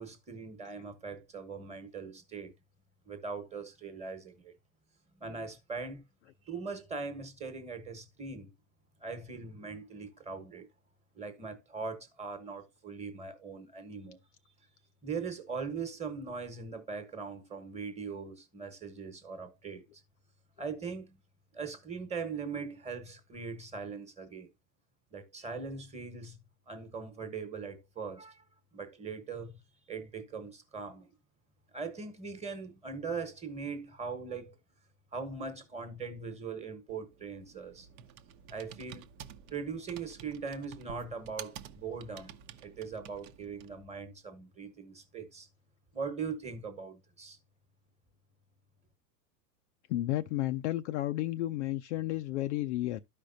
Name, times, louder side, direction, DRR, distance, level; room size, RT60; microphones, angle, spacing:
voice 1, 0.0-2.5 3.0-4.5 5.2-6.1 6.4-8.5 9.0-10.7 11.1-14.2 15.0-19.9 20.6-21.2 21.5-24.5 25.1-28.4 28.7-29.6 29.9-31.1 31.7-34.6 35.1-37.9 38.5-39.1 39.5-42.4 42.6-45.5 45.9-47.4, right 5 dB, 15° right, 1.3 m, -40 dB
Computer keyboard, 36.9-43.9, right 9 dB, 55° right, 0.9 m, -50 dB
voice 2, 49.9-53.0, left 15 dB, 45° left, 0.5 m, -32 dB
12.5 x 5.1 x 2.6 m
hypercardioid pair, 130°, 50 cm